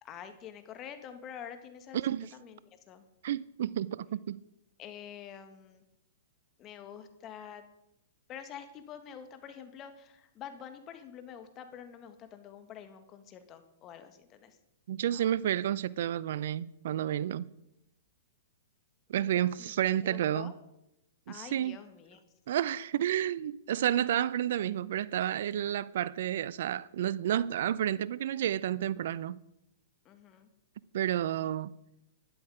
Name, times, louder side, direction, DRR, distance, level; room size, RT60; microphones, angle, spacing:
voice 1, 0.0-3.0 4.8-5.8 6.6-7.6 8.3-14.6 15.0-15.3 19.1-19.7 20.0-20.5 21.3-22.2 30.1-30.5, left 8 dB, 30° left, 1.7 m, -47 dB
voice 2, 1.9-2.3 3.2-4.4 14.9-17.5 19.1-20.5 21.3-21.8 22.5-29.4 30.9-31.7, right 11 dB, 65° right, 0.5 m, -30 dB
12.5 x 10.5 x 5.0 m
hypercardioid pair, 120°, 0 cm